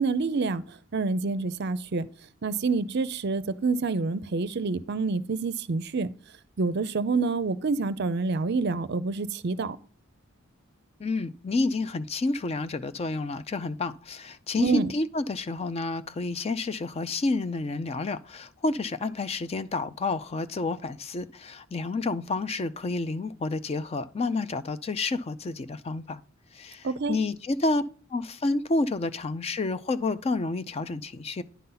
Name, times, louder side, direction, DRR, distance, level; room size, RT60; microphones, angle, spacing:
voice 1, 0.0-2.1 2.4-6.1 6.6-9.8 14.5-14.9 26.8-27.2, right 4 dB, 50° right, 0.5 m, -27 dB
voice 2, 11.0-26.2 26.5-27.8 28.1-31.4, left 3 dB, 30° left, 0.4 m, -29 dB
10.0 x 3.9 x 5.5 m
head